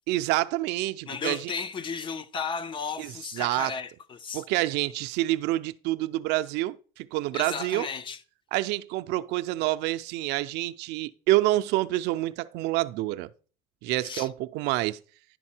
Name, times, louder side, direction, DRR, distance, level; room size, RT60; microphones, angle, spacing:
voice 1, 0.1-1.5 3.0-3.7 4.3-7.9 8.5-13.3 13.8-15.0, right 17 dB, 65° right, 0.5 m, -27 dB
voice 2, 1.1-4.4 7.3-8.2 14.0-14.3, left 5 dB, 25° left, 0.4 m, -34 dB
11.0 x 4.1 x 4.3 m
cardioid pair, 135°, 19 cm